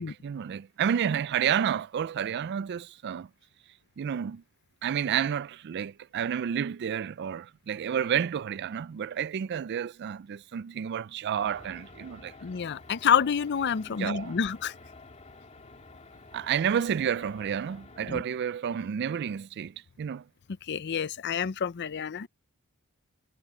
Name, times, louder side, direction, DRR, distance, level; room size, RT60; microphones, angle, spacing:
voice 1, 0.0-3.3 4.0-4.4 4.8-12.3 13.8-14.3 16.3-20.2, right 8 dB, 50° right, 0.3 m, -30 dB
sound 1, 11.4-18.2, left 3 dB, 30° left, 3.0 m, -50 dB
voice 2, 12.4-14.7 18.1-18.2 20.7-22.3, left 7 dB, 50° left, 0.5 m, -28 dB
head